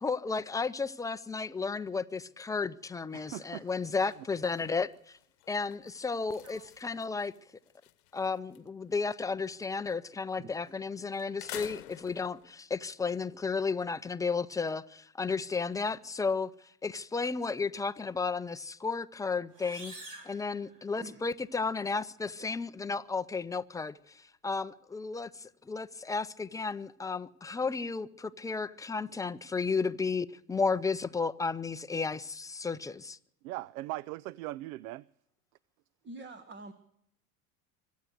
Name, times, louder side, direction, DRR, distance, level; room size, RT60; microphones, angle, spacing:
voice 1, 0.0-5.2 5.5-7.3 8.1-16.5 16.8-19.9 20.2-33.2, left 4 dB, 10° left, 0.5 m, -33 dB
sound 1, 3.1-3.4 3.7-8.7 9.0-10.2 10.7-10.8 11.2-12.5, left 15 dB, 75° left, 1.0 m, -50 dB
voice 2, 3.1-3.7 6.5-6.6 33.4-35.0, right 17 dB, 70° right, 0.5 m, -40 dB
sound 2, 19.5-21.3, right 2 dB, 50° right, 5.1 m, -49 dB
voice 3, 21.0-21.3 36.0-36.7, right 2 dB, 25° right, 1.3 m, -46 dB
25.0 x 8.3 x 6.4 m
hypercardioid pair, 85°, 44 cm